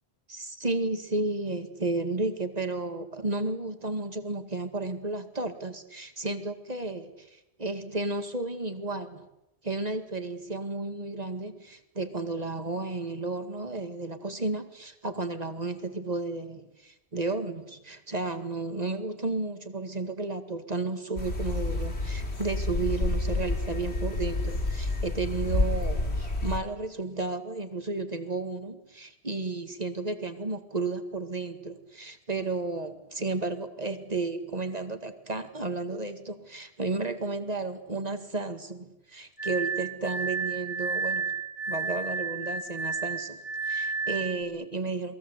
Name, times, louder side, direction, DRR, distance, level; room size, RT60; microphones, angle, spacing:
voice 1, 0.3-9.3 9.6-41.4 41.7-45.1, right 3 dB, 40° right, 8 dB, 2.2 m, -33 dB
sound 1, 21.2-26.6, left 2 dB, 75° left, 3.3 m, -29 dB
Glass, 39.4-44.4, right 4 dB, 30° left, 5.4 m, -32 dB
28.5 x 21.5 x 8.3 m, 0.89 s
omnidirectional pair, 1.1 m